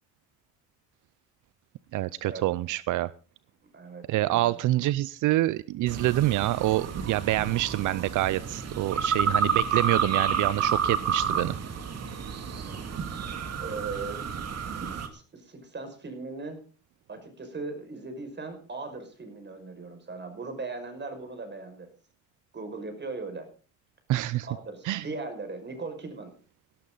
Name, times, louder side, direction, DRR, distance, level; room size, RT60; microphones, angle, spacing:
voice 1, 1.9-3.1 4.1-11.6 24.1-24.5 24.8-25.0, right 16 dB, 80° right, 18 dB, 0.6 m, -26 dB
voice 2, 3.7-4.6 12.6-13.2 13.6-16.6 17.1-21.9 22.5-23.5 24.4-26.3, right 3 dB, 35° right, 7 dB, 5.7 m, -39 dB
sound 1, 5.9-15.1, right 6 dB, 55° right, 2.5 m, -30 dB
17.5 x 12.5 x 4.0 m, 0.37 s
cardioid pair, 90°, 30 cm